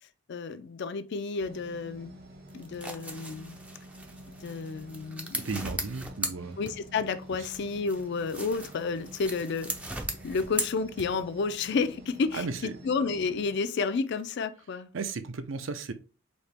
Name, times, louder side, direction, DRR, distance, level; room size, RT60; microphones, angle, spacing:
voice 1, 0.3-2.2 2.5-3.6 4.3-5.5 6.6-9.7 10.2-14.9, left 4 dB, 55° left, 0.4 m, -31 dB
sound 1, 1.4-13.6, right 1 dB, 50° right, 0.9 m, -49 dB
sound 2, 2.5-7.0 7.4-11.4, right 1 dB, 5° right, 0.4 m, -38 dB
voice 2, 5.4-6.6 12.3-12.7 14.9-15.9, right 4 dB, 65° right, 0.5 m, -34 dB
4.3 x 2.9 x 3.3 m
head